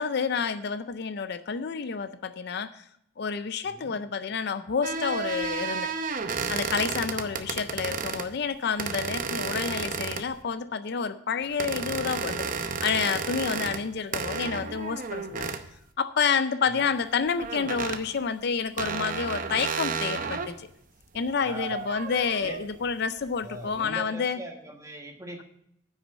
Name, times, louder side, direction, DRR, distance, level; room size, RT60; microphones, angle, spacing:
voice 1, 0.0-2.9 3.2-5.9 6.5-15.5 16.0-20.7 21.1-24.4, left 6 dB, 55° left, 12 dB, 0.5 m, -29 dB
voice 2, 3.6-4.0 7.0-7.3 16.7-16.8 20.3-20.5 21.4-21.7 22.4-22.6 23.4-25.4, right 1 dB, 15° right, 3 dB, 1.3 m, -42 dB
sound 1, 4.8-8.3 8.8-10.4 11.6-13.9 14.1-15.7 17.4-18.0 18.8-20.5 21.1-22.7, right 5 dB, 45° right, 0.7 m, -32 dB
9.6 x 6.2 x 7.1 m, 0.74 s
head